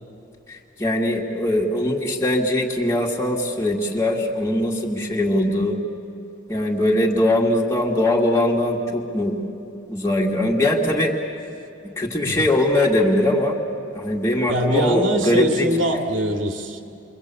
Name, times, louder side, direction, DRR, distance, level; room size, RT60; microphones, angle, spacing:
voice 1, 0.5-5.8 6.5-9.4 9.9-11.1 12.0-13.6 13.9-15.7, left 1 dB, 15° left, -2 dB, 2.2 m, -21 dB
voice 2, 14.5-16.8, equal, 90° right, 3 dB, 2.4 m, -23 dB
29.0 x 24.0 x 8.4 m, 2.7 s
head